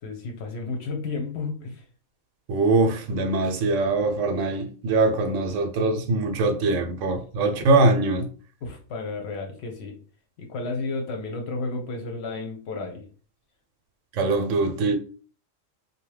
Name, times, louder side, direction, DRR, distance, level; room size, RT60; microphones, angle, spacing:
voice 1, 0.0-1.8 8.6-10.0 10.4-13.0, left 3 dB, 65° left, 0.8 m, -32 dB
voice 2, 2.5-8.3 14.1-15.0, right 3 dB, 75° right, 0.9 m, -22 dB
2.7 x 2.1 x 3.1 m
omnidirectional pair, 1.4 m